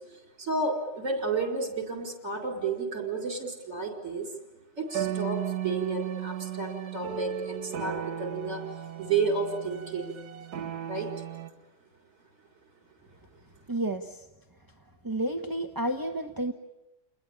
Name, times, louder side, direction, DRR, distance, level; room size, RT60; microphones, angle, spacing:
voice 1, 0.1-4.3 4.8-8.6 9.0-10.1 10.8-11.1, right 4 dB, 45° right, 2 dB, 5.1 m, -31 dB
sound 1, 4.9-11.5, right 10 dB, 60° right, 1.7 m, -35 dB
voice 2, 13.7-14.2 15.0-16.5, right 1 dB, 15° right, 5 dB, 1.0 m, -30 dB
29.5 x 20.5 x 8.8 m, 0.95 s
omnidirectional pair, 1.9 m